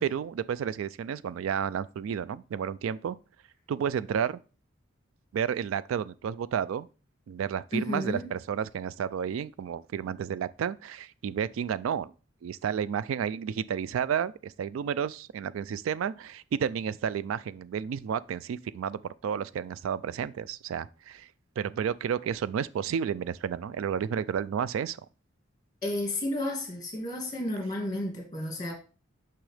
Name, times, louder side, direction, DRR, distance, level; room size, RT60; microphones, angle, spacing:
voice 1, 0.0-3.2 3.7-4.4 5.3-6.9 7.3-12.1 12.4-21.3 21.6-25.0, right 8 dB, 85° right, 0.3 m, -31 dB
voice 2, 7.7-8.3 25.8-28.7, left 1 dB, 20° left, 2.2 m, -32 dB
6.2 x 5.8 x 3.3 m
head